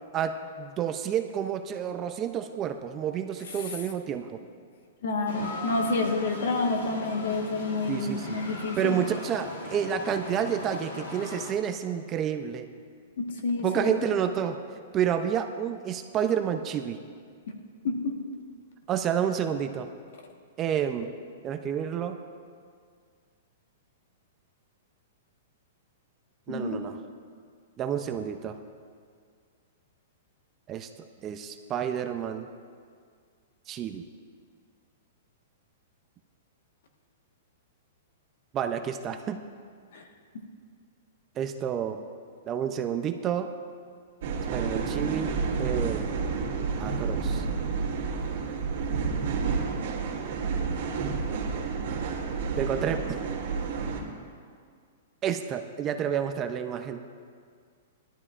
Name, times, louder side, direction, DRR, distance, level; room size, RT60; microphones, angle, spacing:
voice 1, 0.1-4.4 7.9-8.4 8.8-12.7 13.6-14.6 14.9-17.0 18.9-19.9 20.6-21.1 21.4-22.2 26.5-27.0 27.8-28.6 30.7-30.9 31.2-32.5 33.7-34.0 38.5-39.4 41.4-42.0 42.5-43.5 44.5-46.2 46.8-47.4 52.6-53.2 55.2-57.0, right 8 dB, 25° right, 7 dB, 0.5 m, -29 dB
voice 2, 5.0-9.0 13.2-13.9 17.8-18.1 26.5-26.8 39.9-40.1, left 3 dB, 70° left, 3 dB, 1.4 m, -29 dB
sound 1, 5.3-11.5, left 2 dB, 90° left, 1.5 m, -38 dB
sound 2, 44.2-54.0, right 5 dB, 65° right, 1.9 m, -30 dB
17.5 x 12.0 x 2.5 m, 2.1 s
hypercardioid pair, 155°, 0 cm